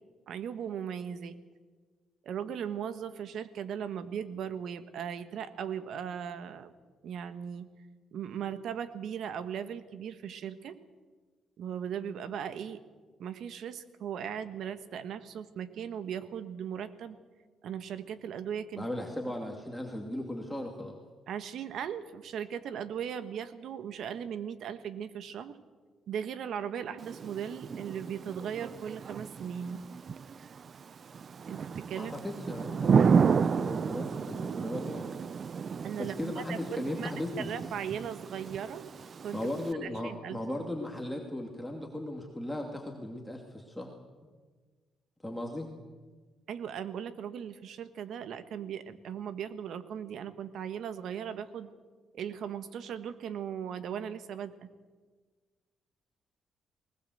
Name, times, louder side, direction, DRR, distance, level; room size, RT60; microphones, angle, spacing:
voice 1, 0.3-1.4 2.2-6.7 7.0-7.7 8.1-10.7 11.6-12.8 13.2-17.2 17.6-18.9 21.3-25.6 26.1-29.8 31.5-32.1 35.8-38.9 39.2-39.4 39.8-40.4 46.5-51.7 52.1-54.7, right 8 dB, 70° right, 12 dB, 1.4 m, -38 dB
voice 2, 18.8-21.0 32.0-35.1 36.0-37.5 39.3-43.9 44.2-44.3 45.2-45.7, left 1 dB, 5° left, 0 dB, 2.6 m, -37 dB
Thunder / Rain, 27.0-39.7, right 6 dB, 50° right, 0.5 m, -32 dB
20.0 x 19.5 x 7.9 m, 1.4 s
cardioid pair, 90°, 0 cm